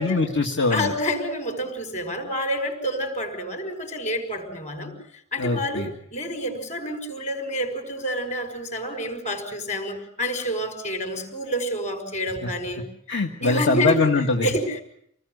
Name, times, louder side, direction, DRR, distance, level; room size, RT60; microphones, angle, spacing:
voice 1, 0.0-0.9 5.4-5.9 13.1-14.5, left 3 dB, 55° left, 3 dB, 1.9 m, -22 dB
voice 2, 0.7-4.9 5.3-12.8 13.4-14.1 14.4-14.8, equal, 35° left, 7 dB, 5.6 m, -28 dB
27.0 x 19.5 x 7.9 m, 0.69 s
head